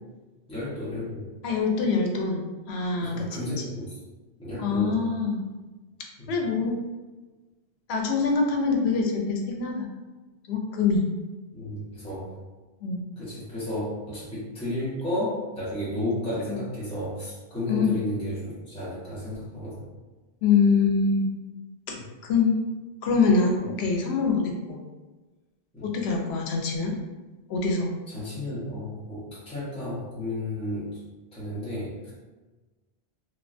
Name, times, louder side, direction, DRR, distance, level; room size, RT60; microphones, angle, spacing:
voice 1, 0.5-1.3 3.0-4.0 4.4-5.0 6.2-6.3 11.5-12.3 13.2-19.9 21.9-22.1 25.7-25.9 28.1-31.0 31.3-32.1, left 1 dB, 5° left, -10 dB, 0.7 m, -32 dB
voice 2, 1.4-3.3 4.6-5.5 6.3-6.8 7.9-9.9 10.5-11.1 12.8-13.1 16.5-16.6 17.7-17.9 20.4-21.3 21.9-22.0 22.2-22.5 23.0-24.8 25.8-26.9 27.5-27.9, left 4 dB, 85° left, 1 dB, 0.8 m, -24 dB
3.2 x 2.1 x 2.5 m, 1.2 s
omnidirectional pair, 1.0 m